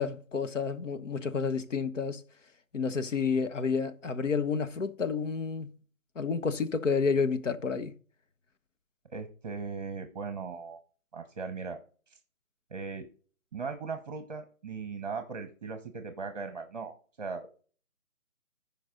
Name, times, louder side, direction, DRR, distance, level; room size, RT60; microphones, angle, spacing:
voice 1, 0.0-2.2 2.7-5.7 6.1-7.9, left 5 dB, 65° left, 1.3 m, -30 dB
voice 2, 9.1-10.8 11.1-11.8 12.1-12.2 12.7-13.0 13.5-17.5, right 4 dB, 30° right, 1.1 m, -38 dB
14.5 x 5.3 x 3.9 m
hypercardioid pair, 160°, 41 cm